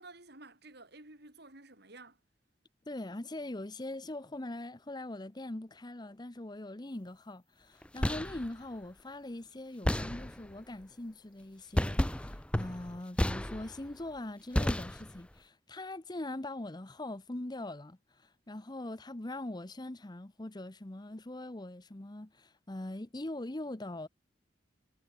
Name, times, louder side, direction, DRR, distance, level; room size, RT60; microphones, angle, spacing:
voice 1, 0.0-2.2, right 2 dB, 60° right, 5.7 m, -52 dB
voice 2, 2.9-24.1, left 1 dB, 20° left, 0.9 m, -42 dB
sound 1, 7.8-8.5 9.8-10.6 11.7-13.9 14.5-15.3, left 1 dB, 5° left, 0.5 m, -32 dB
head